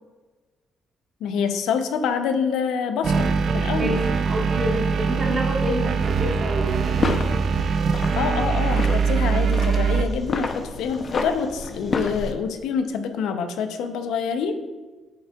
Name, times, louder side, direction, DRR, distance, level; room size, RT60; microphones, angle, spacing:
voice 1, 1.2-4.0 8.1-14.6, left 6 dB, 85° left, 8 dB, 0.6 m, -26 dB
sound 1, 3.0-10.0, right 5 dB, 65° right, 0.4 m, -22 dB
voice 2, 3.7-7.2, right 1 dB, 35° right, -3 dB, 2.1 m, -28 dB
sound 2, 6.8-12.3, left 4 dB, 45° left, 0.6 m, -30 dB
8.7 x 5.4 x 2.3 m, 1.3 s
cardioid pair, 90°, 0 cm